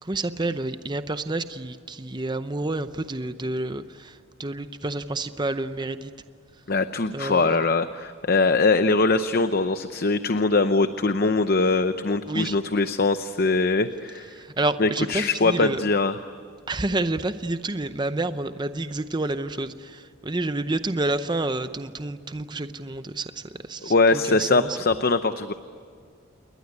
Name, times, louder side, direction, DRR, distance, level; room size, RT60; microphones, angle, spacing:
voice 1, 0.0-6.1 7.1-7.5 12.3-12.6 14.3-15.8 16.7-24.8, right 2 dB, 20° right, 11 dB, 0.7 m, -29 dB
voice 2, 6.7-14.3 14.8-16.2 23.8-25.5, left 3 dB, 45° left, 10 dB, 0.7 m, -22 dB
28.5 x 21.5 x 9.6 m, 2.1 s
head